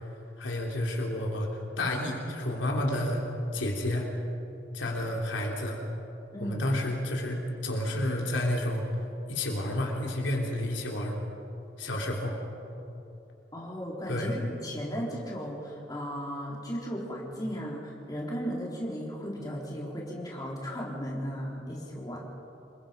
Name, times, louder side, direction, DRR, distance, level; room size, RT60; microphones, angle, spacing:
voice 1, 0.4-3.2 3.5-4.1 4.7-5.8 6.4-8.8 9.3-11.2 11.8-12.3 14.1-14.4, left 1 dB, 85° left, 0 dB, 3.4 m, -30 dB
voice 2, 6.3-6.6 13.5-22.2, equal, 20° left, -4 dB, 4.0 m, -36 dB
27.5 x 22.0 x 5.3 m, 2.9 s
head